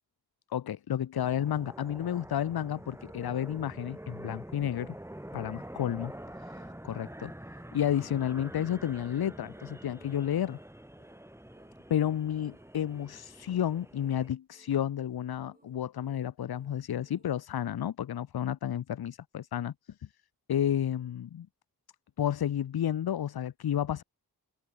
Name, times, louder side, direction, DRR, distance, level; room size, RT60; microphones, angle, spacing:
voice 1, 0.5-5.0 5.3-6.1 6.4-7.3 7.7-10.6 11.9-19.7 20.5-21.5 22.2-24.0, left 10 dB, 65° left, 0.6 m, -31 dB
sound 1, 1.1-14.3, right 1 dB, 5° right, 1.7 m, -46 dB
sound 2, 5.5-17.4, right 2 dB, 20° right, 4.5 m, -65 dB
open air
wide cardioid pair, 55°, 40 cm